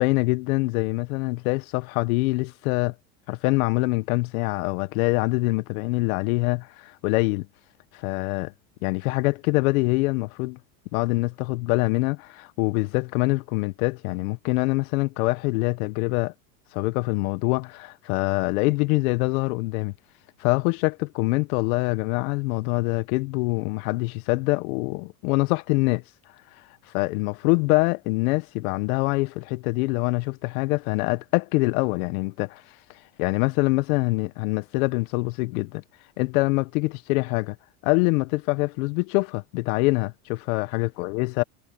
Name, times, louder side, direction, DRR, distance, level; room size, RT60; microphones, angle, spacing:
voice 1, 0.0-2.9 3.3-7.5 7.9-8.5 8.8-10.6 10.9-16.3 16.7-19.9 20.4-26.0 26.9-32.6 33.2-35.8 36.2-37.6 37.8-41.4, left 23 dB, 70° left, 1.4 m, -24 dB
hypercardioid pair, 100°, 44 cm